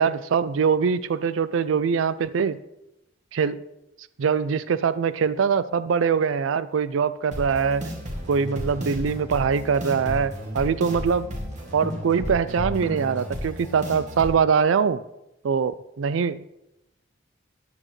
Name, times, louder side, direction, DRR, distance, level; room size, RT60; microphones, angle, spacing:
voice 1, 0.0-2.6 3.3-3.6 4.2-7.8 8.3-11.3 11.7-15.0 15.4-16.4, right 6 dB, 90° right, 15 dB, 0.4 m, -23 dB
sound 1, 7.3-14.3, equal, 40° right, 2.2 m, -33 dB
13.5 x 9.8 x 3.2 m, 0.88 s
head